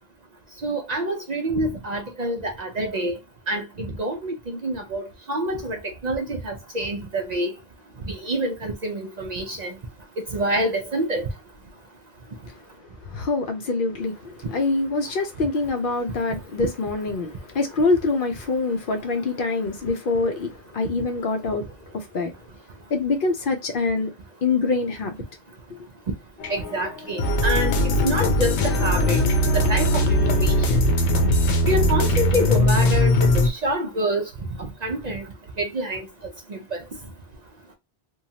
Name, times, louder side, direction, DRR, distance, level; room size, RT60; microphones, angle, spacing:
voice 1, 0.6-3.1 3.5-4.3 4.6-5.8 6.0-7.5 8.1-9.7 10.3-11.3 26.5-27.7 28.0-29.2 29.5-30.6 31.7-34.2 34.8-35.2 35.6-36.0 36.5-36.6, right 1 dB, 50° right, 0.5 m, -26 dB
voice 2, 13.1-14.1 14.5-21.6 22.1-22.3 22.9-24.1 24.4-25.2, left 3 dB, 60° left, 0.6 m, -24 dB
sound 1, 26.4-33.5, left 1 dB, 80° left, 0.9 m, -20 dB
3.0 x 2.2 x 2.7 m
omnidirectional pair, 1.1 m